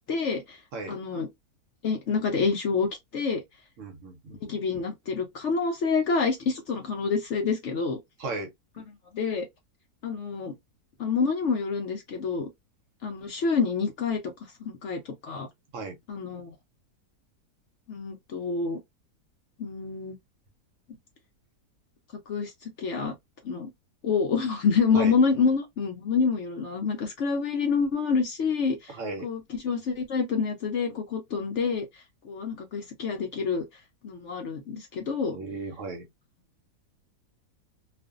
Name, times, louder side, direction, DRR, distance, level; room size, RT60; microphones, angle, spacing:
voice 1, 0.1-0.6 0.9-1.3 1.8-3.4 4.4-8.0 9.1-9.5 10.0-10.5 11.0-12.5 13.0-14.2 14.6-15.5 16.1-16.5 17.9-18.8 19.6-20.2 22.3-23.1 23.4-23.7 24.0-28.9 29.2-33.6 34.0-35.4, left 5 dB, 60° left, 0.8 m, -27 dB
voice 2, 0.7-1.2 3.8-4.6 8.2-8.5 15.7-16.0 24.9-25.1 28.9-29.3 35.3-36.1, right 3 dB, 60° right, 0.9 m, -36 dB
2.5 x 2.4 x 2.3 m
omnidirectional pair, 1.6 m